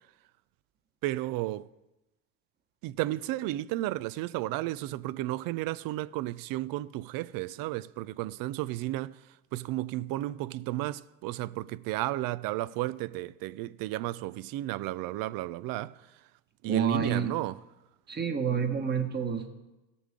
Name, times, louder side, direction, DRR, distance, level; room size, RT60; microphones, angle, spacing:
voice 1, 1.0-1.7 2.8-9.2 9.5-16.1 16.6-17.6, right 16 dB, 65° right, 0.5 m, -33 dB
voice 2, 16.6-17.3 18.1-19.5, right 6 dB, 25° right, 1.5 m, -29 dB
16.5 x 6.9 x 3.7 m
supercardioid pair, 85°, 37 cm